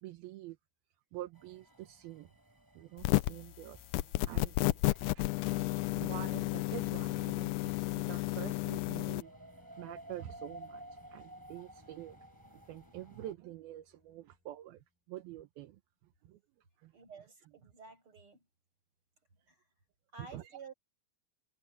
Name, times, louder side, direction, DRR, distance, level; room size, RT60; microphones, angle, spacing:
voice 1, 0.0-0.6 1.1-2.3 2.8-4.8 5.2-9.3 9.8-12.3 12.5-15.8 16.2-16.4 16.8-16.9 20.2-20.6, right 14 dB, 80° right, 2.8 m, -47 dB
sound 1, 1.3-13.3, right 1 dB, 5° right, 3.4 m, -55 dB
sound 2, 3.0-3.5 3.9-9.2, left 20 dB, 90° left, 1.9 m, -32 dB
sound 3, 4.7-14.9, left 4 dB, 70° left, 7.7 m, -66 dB
voice 2, 16.9-18.4 19.5-19.6 20.1-20.7, right 4 dB, 35° right, 8.8 m, -52 dB
omnidirectional pair, 4.3 m